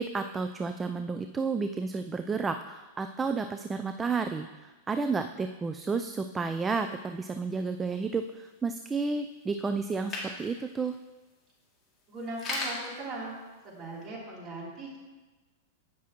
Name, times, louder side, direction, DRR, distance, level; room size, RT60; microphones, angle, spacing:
voice 1, 0.0-11.0, right 4 dB, 15° right, 7 dB, 0.3 m, -31 dB
sound 1, 5.9-14.0, left 2 dB, 20° left, 2.3 m, -43 dB
voice 2, 12.1-13.3 13.6-15.0, right 2 dB, 30° right, -4 dB, 3.2 m, -39 dB
16.0 x 6.1 x 3.0 m, 1.2 s
hypercardioid pair, 130°, 0 cm